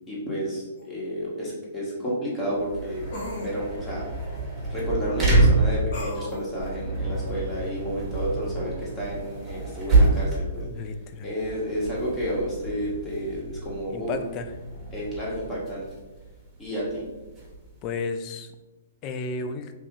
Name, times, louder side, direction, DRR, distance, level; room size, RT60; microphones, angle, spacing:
voice 1, 0.1-3.0 3.3-4.1 4.7-10.9 11.2-14.1 14.9-15.8 16.6-17.1, equal, 15° left, -6 dB, 1.3 m, -31 dB
sound 1, 0.8-0.9 3.1-3.5 5.9-6.4, left 1 dB, 55° left, 1.0 m, -34 dB
sound 2, 2.5-17.9, right 2 dB, 15° right, 1.2 m, -27 dB
voice 2, 10.6-11.3 13.9-14.5 17.8-18.5 19.0-19.7, left 4 dB, 35° left, 8 dB, 0.3 m, -32 dB
3.0 x 2.7 x 3.6 m, 1.2 s
hypercardioid pair, 135°, 0 cm